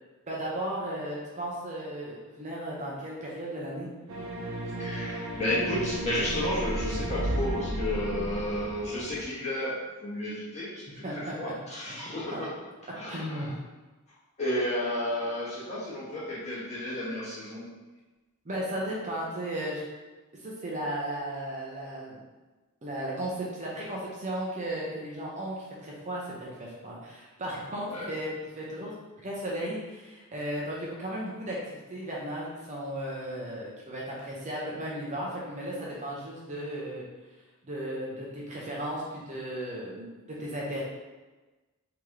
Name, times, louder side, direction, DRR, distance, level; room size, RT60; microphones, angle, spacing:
voice 1, 0.3-3.9 11.0-11.5 12.3-12.4 13.1-13.5 18.4-19.8 20.4-22.2 22.8-28.3 28.5-29.0 29.2-37.1 37.6-40.8, right 1 dB, 35° right, -4 dB, 0.6 m, -35 dB
sound 1, 4.1-9.2, right 1 dB, 70° right, 0.7 m, -33 dB
voice 2, 4.8-10.7 11.1-12.5 12.9-13.5 14.4-17.7 27.9-28.1, left 1 dB, 30° left, -9 dB, 1.3 m, -32 dB
3.2 x 2.9 x 3.6 m, 1.2 s
head